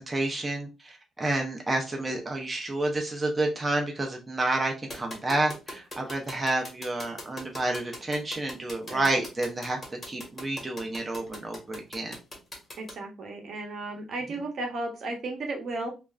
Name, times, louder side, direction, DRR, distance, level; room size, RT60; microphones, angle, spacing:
voice 1, 0.0-9.8 10.1-12.2, right 2 dB, 20° right, 1 dB, 0.6 m, -29 dB
sound 1, 4.9-12.9, left 1 dB, 30° left, 1.4 m, -40 dB
voice 2, 12.8-15.9, right 2 dB, 60° right, 3 dB, 0.8 m, -34 dB
3.1 x 2.4 x 2.3 m, 0.29 s
cardioid pair, 90°, 0 cm